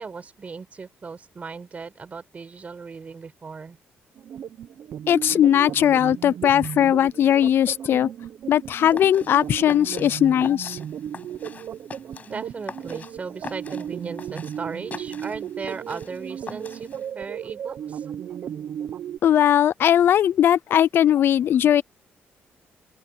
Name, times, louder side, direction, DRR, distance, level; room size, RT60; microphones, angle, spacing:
voice 1, 0.0-3.8 12.2-18.1, right 5 dB, 35° right, 6.9 m, -37 dB
sound 1, 4.2-19.2, right 9 dB, 65° right, 1.0 m, -35 dB
voice 2, 5.1-8.1 8.5-10.8 19.2-21.8, left 10 dB, 65° left, 0.5 m, -19 dB
sound 2, 8.7-17.1, left 5 dB, 40° left, 6.0 m, -43 dB
open air
cardioid pair, 105°, 4 cm